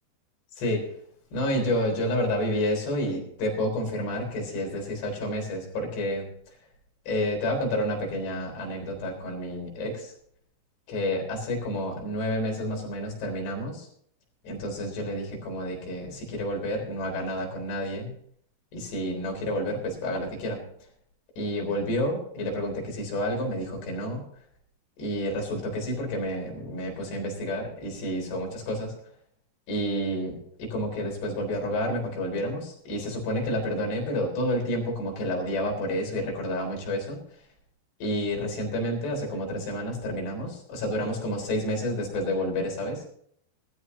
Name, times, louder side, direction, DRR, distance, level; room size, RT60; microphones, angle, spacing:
voice 1, 1.3-6.3 7.1-10.1 10.9-13.9 14.4-18.1 18.7-20.6 21.4-24.2 25.0-28.9 29.7-37.2 38.0-43.1, left 1 dB, 80° left, 2 dB, 6.0 m, -29 dB
20.0 x 13.0 x 2.7 m, 0.63 s
omnidirectional pair, 4.8 m